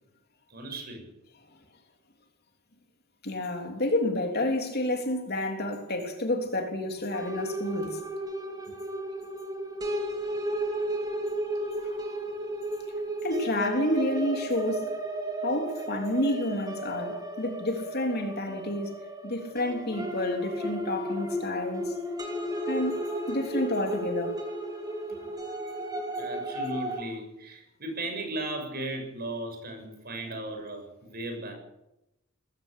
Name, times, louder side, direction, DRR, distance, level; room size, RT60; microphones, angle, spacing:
voice 1, 0.5-1.1 18.4-18.5 26.2-31.5, right 1 dB, 45° right, 7.2 m, -36 dB
voice 2, 3.2-8.0 11.8-12.0 13.2-14.9 15.4-22.0 22.7-23.0 23.3-24.3, left 1 dB, 50° left, 3.4 m, -29 dB
sound 1, 7.1-27.0, right 1 dB, 20° right, 2.8 m, -34 dB
20.5 x 15.5 x 8.4 m
head